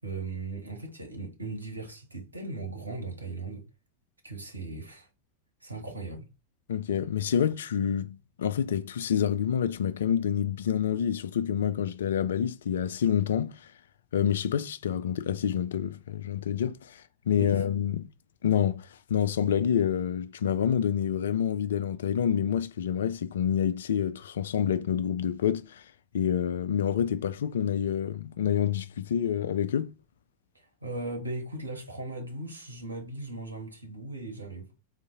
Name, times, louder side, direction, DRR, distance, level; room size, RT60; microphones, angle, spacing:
voice 1, 0.0-3.6 4.2-5.1 5.6-6.3 17.3-17.6 30.5-34.7, right 2 dB, 80° right, 1.1 m, -38 dB
voice 2, 6.7-13.6 14.1-18.1 18.4-25.8 26.1-29.9, left 9 dB, 60° left, 0.4 m, -27 dB
3.8 x 2.5 x 3.7 m
figure-of-eight pair, 90°, 0 cm